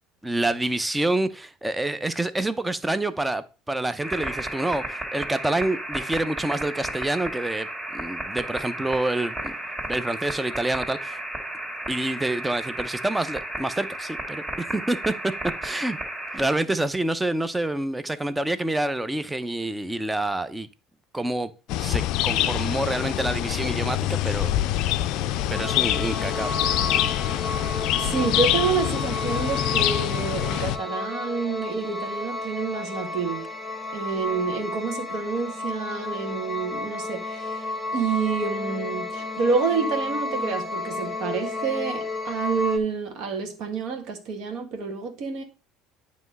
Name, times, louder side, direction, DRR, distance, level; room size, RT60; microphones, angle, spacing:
voice 1, 0.2-7.7 7.9-9.5 9.8-11.2 11.9-15.3 15.6-16.0 16.3-20.7 21.1-21.5 21.8-24.5 25.5-26.8, right 2 dB, 10° right, 0.6 m, -27 dB
sound 1, 4.0-16.4, right 1 dB, 30° right, 2.7 m, -33 dB
sound 2, 21.7-30.8, left 13 dB, 65° left, 0.4 m, -25 dB
sound 3, 25.5-42.8, left 2 dB, 10° left, 1.1 m, -32 dB
voice 2, 28.0-33.5 33.9-37.6 37.9-45.4, right 5 dB, 60° right, 1.5 m, -28 dB
9.1 x 3.1 x 5.3 m
hypercardioid pair, 75°, 0 cm